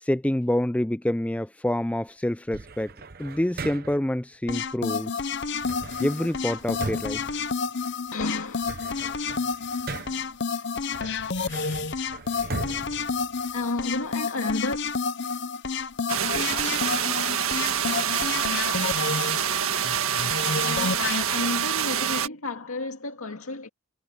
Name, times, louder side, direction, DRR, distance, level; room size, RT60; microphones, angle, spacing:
voice 1, 0.0-2.9 3.2-5.2 6.0-7.4, left 1 dB, 5° left, 0.4 m, -27 dB
sound 1, 2.5-4.2 5.6-8.1 8.4-10.4 10.9-13.9, right 3 dB, 45° right, 0.9 m, -39 dB
sound 2, 4.5-21.2, left 5 dB, 55° left, 0.7 m, -30 dB
voice 2, 8.1-8.8 13.5-14.8 20.6-23.7, left 2 dB, 85° left, 2.2 m, -31 dB
sound 3, 16.1-22.3, right 9 dB, 80° right, 1.7 m, -26 dB
head